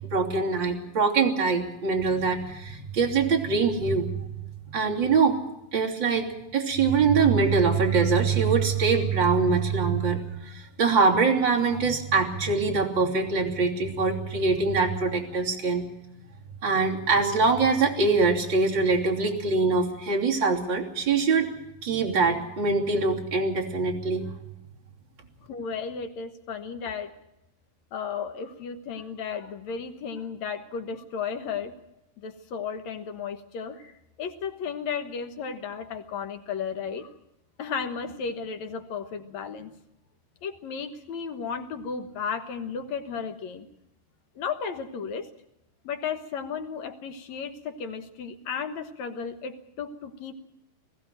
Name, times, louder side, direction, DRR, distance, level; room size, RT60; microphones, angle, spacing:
voice 1, 0.1-4.1 4.7-5.4 5.7-6.3 6.5-10.2 10.5-15.8 16.6-21.5 21.8-24.3, right 4 dB, 35° right, -2 dB, 3.5 m, -23 dB
voice 2, 25.5-27.1 27.9-31.7 32.2-37.1 37.6-39.7 40.4-43.7 44.4-45.3 45.8-50.3, left 6 dB, 60° left, 7 dB, 2.4 m, -34 dB
21.0 x 15.0 x 9.1 m, 0.84 s
omnidirectional pair, 3.9 m